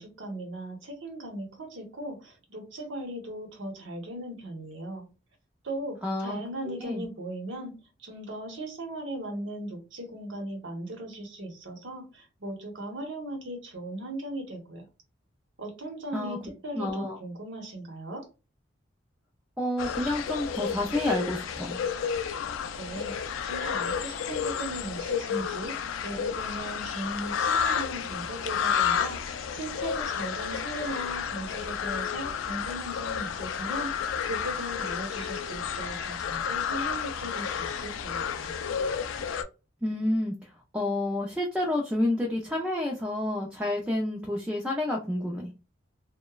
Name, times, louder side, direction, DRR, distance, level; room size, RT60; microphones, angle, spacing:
voice 1, 0.0-5.1 5.6-14.9 15.6-18.3 22.8-38.6, right 1 dB, 80° right, 0.9 m, -38 dB
voice 2, 6.0-6.4 6.7-7.1 16.1-16.4 16.7-17.2 19.6-21.8 39.8-45.5, left 1 dB, 5° right, 0.4 m, -29 dB
sound 1, 19.8-39.4, left 7 dB, 90° left, 0.3 m, -31 dB
2.9 x 2.1 x 2.2 m
head